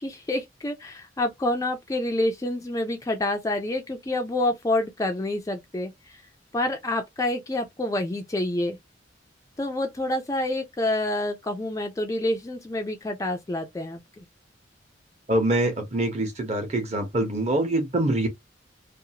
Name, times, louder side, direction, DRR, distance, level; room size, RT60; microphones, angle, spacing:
voice 1, 0.0-6.2 6.5-8.8 9.6-14.2, left 1 dB, 15° left, 0.3 m, -28 dB
voice 2, 15.3-18.3, right 1 dB, 35° right, 0.9 m, -24 dB
2.6 x 2.3 x 2.8 m
head